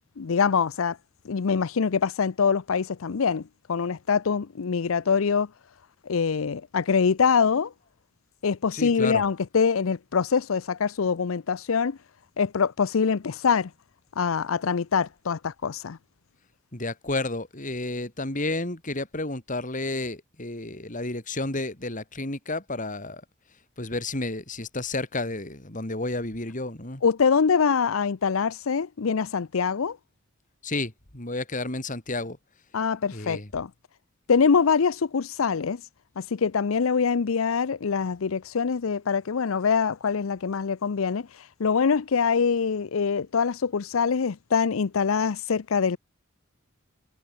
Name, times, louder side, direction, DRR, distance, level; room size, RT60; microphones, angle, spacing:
voice 1, 0.2-1.0 1.2-5.5 6.1-7.7 8.4-12.0 12.4-13.7 14.2-16.0 27.0-30.0 32.7-33.7 34.3-35.8 36.2-41.3 41.6-46.0, left 6 dB, 90° left, 0.6 m, -24 dB
voice 2, 8.7-9.2 16.7-23.2 23.8-27.0 30.6-32.4 33.1-33.5, left 2 dB, 40° left, 3.7 m, -31 dB
head